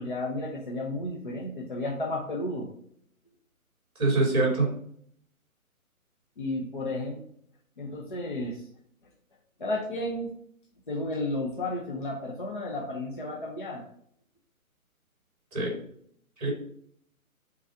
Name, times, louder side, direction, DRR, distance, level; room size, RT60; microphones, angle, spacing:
voice 1, 0.0-2.7 6.4-7.2 7.8-8.6 9.6-10.3 10.9-13.8, left 1 dB, 35° left, -1 dB, 0.8 m, -32 dB
voice 2, 4.0-4.7 15.5-15.7 16.4-16.5, right 2 dB, 25° right, -1 dB, 2.4 m, -24 dB
5.2 x 4.0 x 4.9 m, 0.67 s
hypercardioid pair, 175°, 43 cm